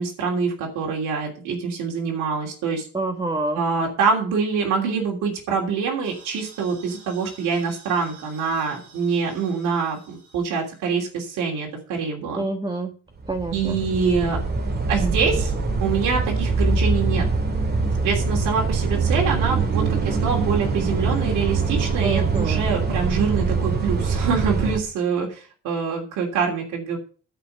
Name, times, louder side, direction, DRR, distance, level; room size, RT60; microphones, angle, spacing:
voice 1, 0.0-2.8 3.5-12.4 13.5-14.4 14.9-15.5 15.8-17.3 18.0-27.0, right 5 dB, 85° right, 0 dB, 3.1 m, -25 dB
voice 2, 2.9-3.6 12.3-12.9 13.3-13.8 22.0-22.7, right 2 dB, 15° right, 4 dB, 1.6 m, -27 dB
sound 1, 6.0-11.3, right 4 dB, 60° right, 6.9 m, -50 dB
sound 2, 13.2-24.8, right 4 dB, 35° right, 2.2 m, -23 dB
12.5 x 5.2 x 7.8 m, 0.38 s
cardioid pair, 90°, 30 cm